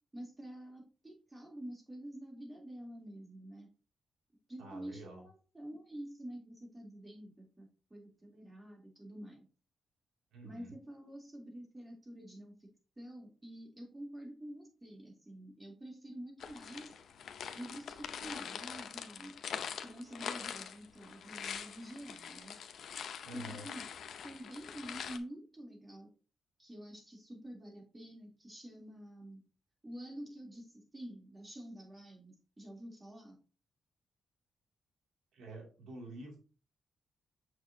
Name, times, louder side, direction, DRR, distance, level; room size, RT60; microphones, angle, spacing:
voice 1, 0.1-3.7 4.5-9.5 10.4-12.7 13.0-16.9 17.5-19.3 19.8-22.6 23.3-23.9 24.2-26.1 26.6-29.4 29.8-33.4, right 1 dB, 20° right, 0 dB, 3.3 m, -48 dB
voice 2, 4.6-5.2 10.3-10.7 23.2-23.6 35.3-36.4, right 2 dB, 85° right, -1 dB, 2.7 m, -48 dB
sound 1, 16.4-25.2, left 7 dB, 75° left, 0.7 m, -44 dB
6.7 x 6.4 x 2.8 m, 0.35 s
cardioid pair, 75°, 0 cm